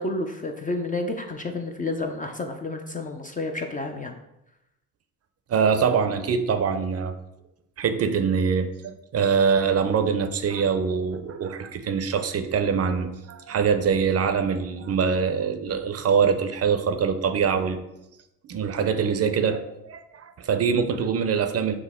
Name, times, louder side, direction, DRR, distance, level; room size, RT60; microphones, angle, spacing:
voice 1, 0.0-4.1, left 2 dB, 20° left, 4 dB, 0.4 m, -30 dB
voice 2, 5.5-7.1 7.8-17.8 18.4-21.7, right 6 dB, 40° right, 7 dB, 0.5 m, -24 dB
5.9 x 2.1 x 3.5 m, 0.88 s
supercardioid pair, 70°, 40 cm